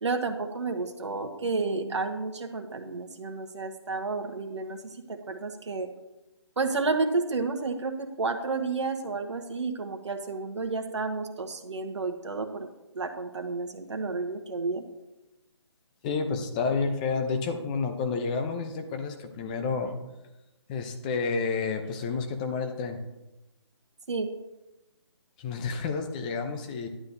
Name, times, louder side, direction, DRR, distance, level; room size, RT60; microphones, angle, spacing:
voice 1, 0.0-5.9 6.6-12.7 12.9-14.8 24.1-24.3, right 3 dB, 70° right, 5 dB, 1.1 m, -31 dB
voice 2, 16.0-19.9 20.7-23.0 25.4-26.9, left 4 dB, 15° left, 6 dB, 0.6 m, -30 dB
11.0 x 8.7 x 2.7 m, 0.99 s
figure-of-eight pair, 155°, 15 cm